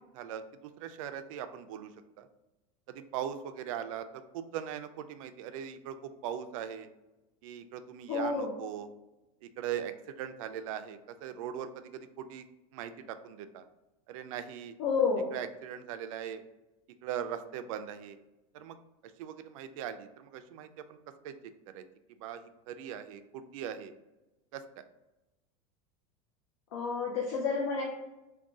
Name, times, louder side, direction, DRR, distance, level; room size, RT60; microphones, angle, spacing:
voice 1, 0.1-2.3 2.9-6.9 7.4-8.9 9.4-12.4 12.7-13.6 14.1-14.7 15.3-16.5 17.0-18.2 18.5-18.8 19.0-21.0 21.2-21.3 21.7-23.9 24.5-24.8, right 9 dB, 65° right, 9 dB, 0.4 m, -40 dB
voice 2, 8.1-8.5 14.8-15.3 26.7-27.8, left 5 dB, 65° left, -2 dB, 0.7 m, -30 dB
3.6 x 2.3 x 3.7 m, 1.0 s
supercardioid pair, 175°, 19 cm